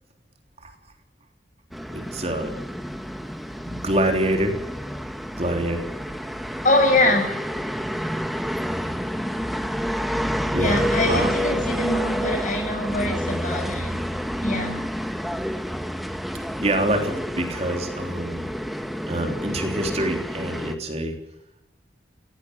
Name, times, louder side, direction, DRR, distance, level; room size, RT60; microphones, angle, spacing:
sound 1, 1.7-20.7, equal, ahead, 1.6 m, -29 dB
voice 1, 1.9-2.5 3.7-4.6 5.4-5.8 10.5-11.3 16.6-18.5 19.1-21.2, right 1 dB, 35° right, 4 dB, 3.5 m, -26 dB
voice 2, 6.6-7.3 10.6-14.0 14.4-14.7, left 2 dB, 45° left, 5 dB, 6.8 m, -23 dB
18.0 x 17.5 x 9.9 m, 0.88 s
head